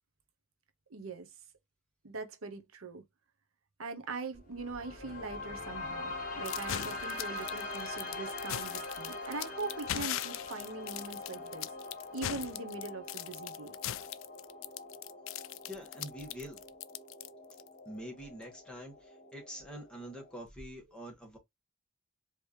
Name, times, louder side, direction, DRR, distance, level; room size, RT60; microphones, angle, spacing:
voice 1, 0.9-1.3 2.0-3.0 3.8-11.7 12.1-13.8, right 3 dB, 80° right, 0.9 m, -42 dB
sound 1, 4.3-20.3, left 2 dB, 40° left, 1.7 m, -43 dB
sound 2, 6.4-17.7, left 12 dB, 70° left, 0.3 m, -39 dB
voice 2, 15.7-16.6 17.9-21.4, equal, 5° left, 1.7 m, -45 dB
4.8 x 3.0 x 3.2 m
head